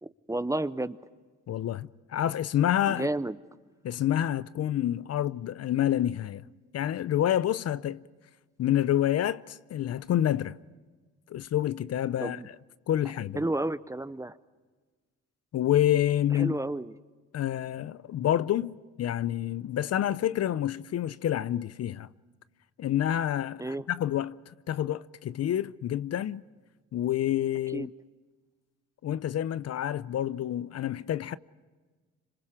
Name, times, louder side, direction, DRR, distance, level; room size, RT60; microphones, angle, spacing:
voice 1, 0.0-1.0 2.9-3.4 12.2-12.5 13.3-14.4 16.3-16.9 23.6-23.8 27.7-27.9, right 2 dB, 10° right, 0.7 m, -31 dB
voice 2, 1.5-3.1 3.8-6.4 6.7-8.0 8.6-10.6 11.3-12.6 12.9-13.4 15.5-16.6 17.3-22.1 22.8-26.4 26.9-27.9 29.0-31.4, left 11 dB, 55° left, 0.6 m, -28 dB
26.5 x 26.5 x 4.9 m
cardioid pair, 90°, 30 cm